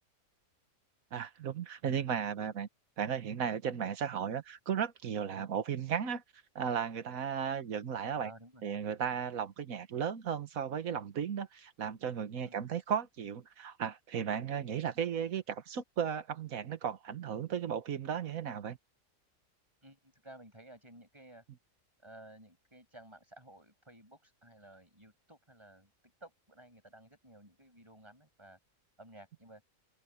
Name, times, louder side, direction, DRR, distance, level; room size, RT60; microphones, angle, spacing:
voice 1, 1.1-2.7 3.0-6.2 6.5-8.3 8.6-18.8, right 7 dB, 90° right, 1.6 m, -35 dB
voice 2, 8.2-8.6 12.4-12.6 19.8-21.4 22.0-25.9 26.2-28.6 29.0-29.6, right 1 dB, 20° right, 6.6 m, -55 dB
open air
omnidirectional pair, 1.4 m